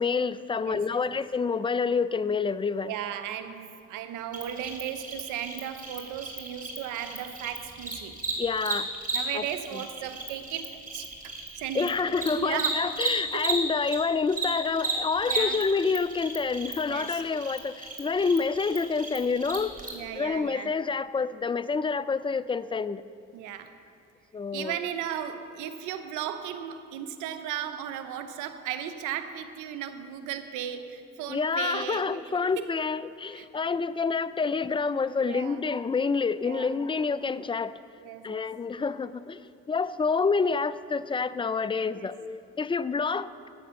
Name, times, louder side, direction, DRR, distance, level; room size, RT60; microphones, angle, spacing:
voice 1, 0.0-2.9 8.4-8.9 9.3-9.5 9.7-9.8 11.7-19.7 20.1-23.0 24.3-24.7 31.3-37.8 38.2-39.4 39.7-43.5, left 5 dB, 15° left, 15 dB, 0.4 m, -28 dB
voice 2, 0.6-1.0 2.8-8.2 9.1-11.9 12.4-12.8 13.3-13.5 15.2-15.6 16.8-17.2 19.9-20.7 23.3-23.7 24.5-32.1 32.6-32.7 33.3-33.5 35.2-35.6 36.4-36.7 38.0-38.5 41.9-42.1, right 10 dB, 85° right, 10 dB, 0.8 m, -36 dB
Cricket, 4.3-14.0 14.3-19.9, right 3 dB, 30° right, 3.2 m, -34 dB
14.0 x 7.9 x 6.4 m, 2.4 s
supercardioid pair, 70°, 30 cm